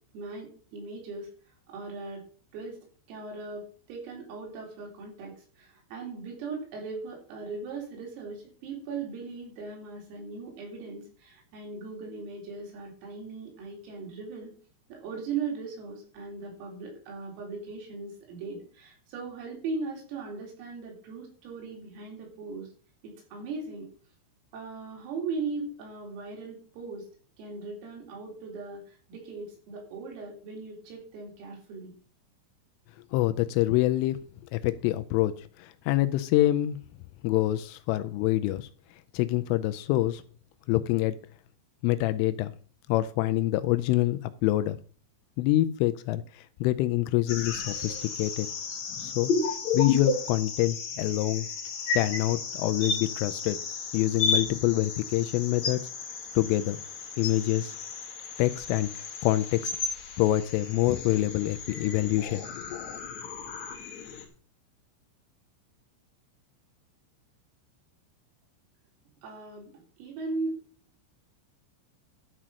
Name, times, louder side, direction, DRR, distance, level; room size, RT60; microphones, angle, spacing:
voice 1, 0.1-1.3 1.7-2.2 2.5-2.8 3.1-14.5 14.9-22.7 23.0-23.9 24.5-27.1 27.4-32.0 69.2-69.7 70.0-70.6, right 4 dB, 80° right, -1 dB, 6.5 m, -38 dB
voice 2, 33.1-34.2 34.5-35.3 35.6-36.8 37.2-38.7 39.1-40.2 40.7-41.1 41.8-42.5 42.9-44.8 45.4-48.5 49.0-49.3 49.7-51.5 51.9-53.6 53.9-55.9 56.4-56.8 57.2-57.8 58.4-58.9 59.2-59.7 60.2-62.4 62.7-62.8, left 15 dB, 85° left, 11 dB, 3.0 m, -26 dB
sound 1, 47.3-64.2, left 5 dB, 50° left, 2.3 m, -33 dB
12.5 x 5.8 x 6.2 m, 0.42 s
omnidirectional pair, 6.0 m